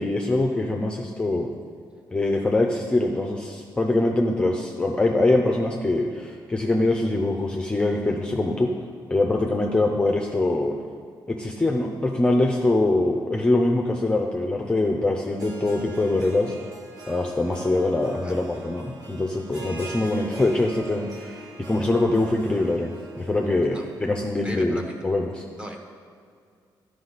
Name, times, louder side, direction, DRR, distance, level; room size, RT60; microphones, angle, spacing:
voice 1, 0.0-1.5 2.1-8.7 9.1-10.7 11.3-16.5 17.1-25.4, left 2 dB, 10° left, 1 dB, 0.5 m, -23 dB
Harp, 15.3-24.3, right 2 dB, 50° right, 1.2 m, -42 dB
voice 2, 24.3-25.0 25.6-25.8, equal, 15° right, 2 dB, 0.9 m, -37 dB
11.5 x 5.1 x 4.0 m, 2.2 s
cardioid pair, 130°, 8 cm